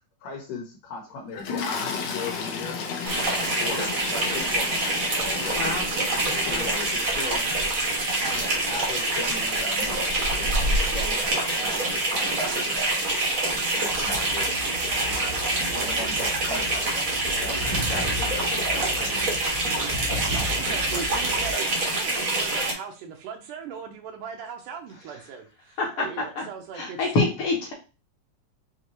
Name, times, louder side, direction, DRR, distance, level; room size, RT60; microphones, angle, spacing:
voice 1, 0.2-2.8 3.2-5.9 6.2-7.5 8.2-10.0 10.4-11.3 11.5-13.2 13.5-14.5 15.0-15.3 15.7-17.6 17.9-19.6 20.1-21.1, left 3 dB, 90° left, 2 dB, 2.6 m, -38 dB
Toilet flush, 1.4-11.7 12.6-12.8 13.0-13.2, left 5 dB, 70° left, 1.9 m, -36 dB
sound 1, 3.0-22.7, right 2 dB, 55° right, 0.9 m, -26 dB
voice 2, 5.5-5.9 6.4-6.7 17.9-18.1 25.8-26.1 26.4-26.5 26.7-27.7, left 3 dB, 55° left, -1 dB, 1.9 m, -26 dB
sound 2, 13.9-21.5, left 1 dB, 10° left, 1.0 m, -36 dB
voice 3, 20.4-21.7 21.9-27.0, right 6 dB, 80° right, 1 dB, 2.2 m, -38 dB
6.2 x 2.8 x 2.9 m, 0.32 s
omnidirectional pair, 3.6 m